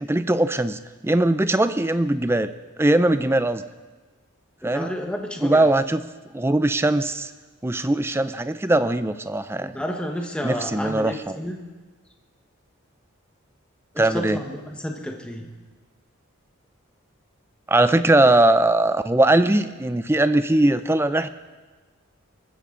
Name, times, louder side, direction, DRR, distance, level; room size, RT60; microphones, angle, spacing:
voice 1, 0.0-2.5 2.8-3.6 4.6-4.9 5.4-6.0 6.3-7.3 7.6-9.7 10.4-11.4 14.0-14.4 17.7-21.3, right 1 dB, 10° right, 12 dB, 0.5 m, -20 dB
voice 2, 4.6-5.7 9.6-11.6 13.9-15.5, equal, 5° left, 2 dB, 1.3 m, -31 dB
23.0 x 14.0 x 3.8 m, 1.4 s
head